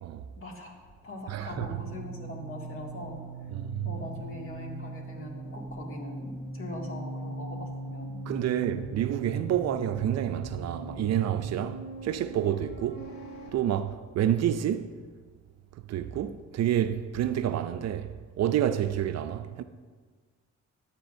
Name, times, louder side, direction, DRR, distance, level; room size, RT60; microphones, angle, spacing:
voice 1, 0.4-0.7 1.0-3.2 3.8-8.2, left 1 dB, 45° left, 2.1 m, -41 dB
sound 1, 0.7-13.5, right 1 dB, 70° left, 2.4 m, -41 dB
voice 2, 1.3-1.8 3.5-4.0 8.3-13.1 13.5-15.0 15.9-19.6, right 10 dB, 60° right, 0.5 m, -29 dB
13.5 x 8.2 x 2.7 m
cardioid pair, 90°, 30 cm